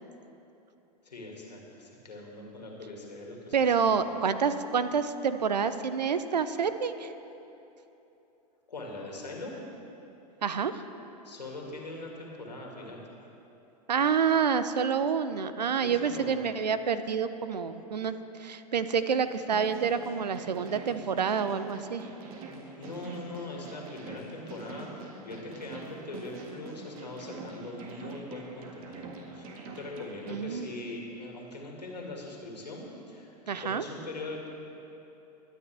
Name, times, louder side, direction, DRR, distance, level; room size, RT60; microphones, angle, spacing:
voice 1, 1.0-4.1 8.7-9.5 11.2-13.0 15.8-16.5 22.8-33.3 33.6-34.5, left 2 dB, 85° left, -1 dB, 2.3 m, -41 dB
voice 2, 3.5-7.1 10.4-10.8 13.9-22.0 30.2-30.7 33.5-33.8, right 6 dB, 85° right, 12 dB, 0.7 m, -28 dB
sound 1, 19.3-30.4, right 3 dB, 60° right, 1.7 m, -45 dB
22.5 x 9.4 x 3.5 m, 3.0 s
hypercardioid pair, 95°, 21 cm